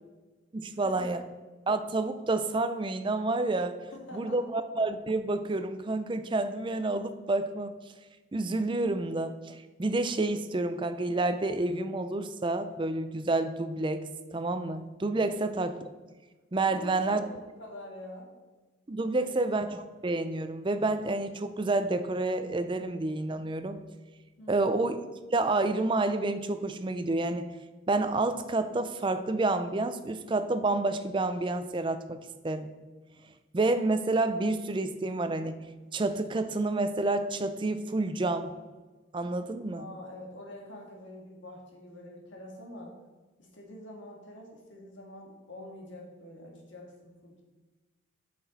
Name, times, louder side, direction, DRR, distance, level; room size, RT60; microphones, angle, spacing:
voice 1, 0.5-1.2 1.7-3.9 4.1-7.8 8.3-15.8 16.5-17.2 18.9-23.8 24.5-25.0 25.3-27.5 27.9-32.7 33.5-35.6 35.9-38.5 39.1-39.9, right 2 dB, 25° right, 10 dB, 0.4 m, -29 dB
voice 2, 3.9-4.4 16.7-18.3 19.1-19.3 24.4-24.8 39.7-42.9 43.4-47.4, left 1 dB, 65° left, 0 dB, 1.8 m, -46 dB
8.7 x 6.0 x 4.1 m, 1.2 s
head